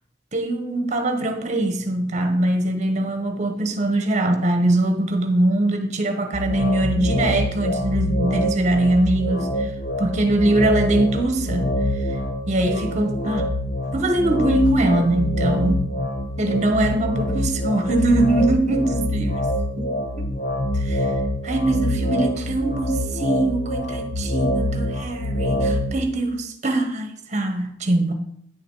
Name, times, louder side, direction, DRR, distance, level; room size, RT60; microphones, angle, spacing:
voice 1, 0.3-9.7 10.0-11.7 12.5-13.5 13.9-15.8 16.4-19.9 20.2-20.3 20.7-21.1 21.4-28.1, right 1 dB, 40° right, 6 dB, 1.1 m, -22 dB
sound 1, 6.3-26.0, left 1 dB, 45° left, 0.7 m, -25 dB
9.5 x 6.7 x 4.0 m, 0.72 s
head